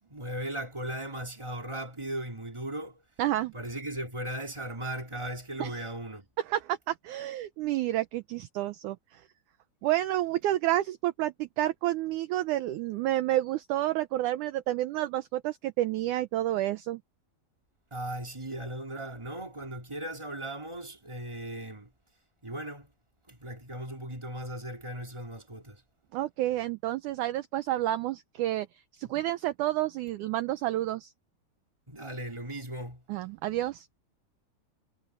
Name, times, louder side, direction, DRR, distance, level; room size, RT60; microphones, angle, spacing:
voice 1, 0.0-3.0 3.5-6.3 17.9-21.9 22.4-22.9 23.3-25.8 29.0-29.1 31.9-33.0, right 1 dB, 10° right, 3.1 m, -37 dB
voice 2, 3.2-3.5 5.6-5.9 6.4-9.2 9.8-17.0 26.1-28.7 28.9-31.1 33.1-33.9, right 14 dB, 80° right, 1.8 m, -30 dB
omnidirectional pair, 4.3 m